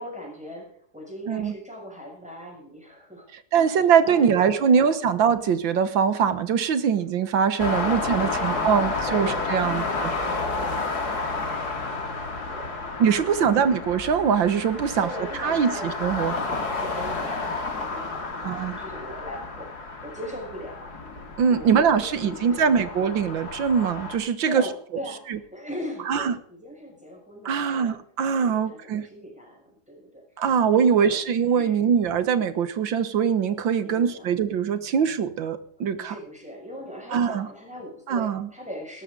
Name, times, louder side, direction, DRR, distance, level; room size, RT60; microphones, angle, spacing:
voice 1, 0.0-4.8 7.8-11.9 12.5-12.8 13.2-13.6 14.9-20.9 21.5-22.9 24.4-27.9 28.3-30.5 30.7-31.2 31.5-31.9 33.8-34.3 36.0-39.0, equal, 5° right, -1 dB, 6.5 m, -39 dB
voice 2, 3.5-9.8 13.0-15.1 15.4-16.3 18.4-18.8 21.4-24.6 25.3-25.4 26.1-26.3 27.5-29.1 30.4-36.2 37.1-37.5 38.1-38.5, right 7 dB, 85° right, 11 dB, 2.0 m, -22 dB
sound 1, 7.6-24.2, left 3 dB, 55° left, 3.0 m, -31 dB
17.5 x 13.5 x 3.9 m, 0.63 s
omnidirectional pair, 2.0 m